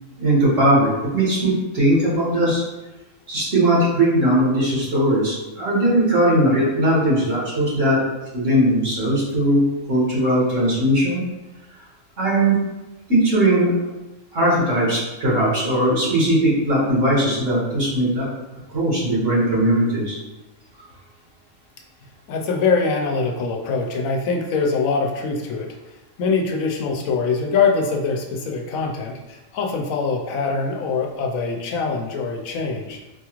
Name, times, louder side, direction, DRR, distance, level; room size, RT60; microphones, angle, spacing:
voice 1, 0.2-2.6 3.3-8.0 8.3-9.6 9.9-11.2 12.2-12.6 13.1-13.7 14.3-18.3 18.7-20.2, right 1 dB, 65° right, -8 dB, 1.9 m, -19 dB
voice 2, 22.3-25.7 26.2-33.0, left 4 dB, 90° left, 2 dB, 1.0 m, -23 dB
4.6 x 2.4 x 3.0 m, 1.0 s
omnidirectional pair, 1.4 m